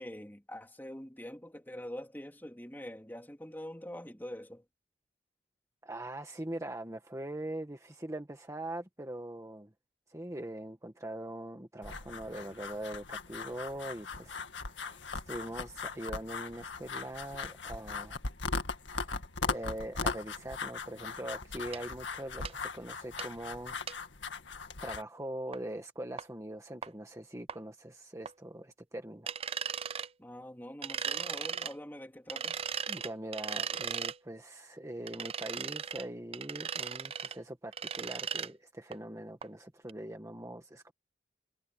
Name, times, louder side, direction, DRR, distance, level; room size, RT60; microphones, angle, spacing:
voice 1, 0.0-4.6 30.2-32.6, equal, 10° left, 3.1 m, -44 dB
voice 2, 5.8-9.7 10.1-18.2 19.0-19.1 19.5-23.8 24.8-29.3 32.9-40.9, right 1 dB, 15° right, 1.4 m, -42 dB
sound 1, 11.8-25.0, left 4 dB, 85° left, 2.0 m, -39 dB
sound 2, 21.7-21.8 22.5-22.6 23.2-23.3 23.9-24.0 25.5-25.6 26.2-26.3 26.8-26.9 27.5-27.6 28.3-28.4 29.3-30.1 30.8-31.7 32.3-34.2 35.1-36.1 36.3-37.4 37.7-38.5 38.9-39.0 39.4-39.5 39.9-40.0, right 8 dB, 30° right, 0.5 m, -37 dB
head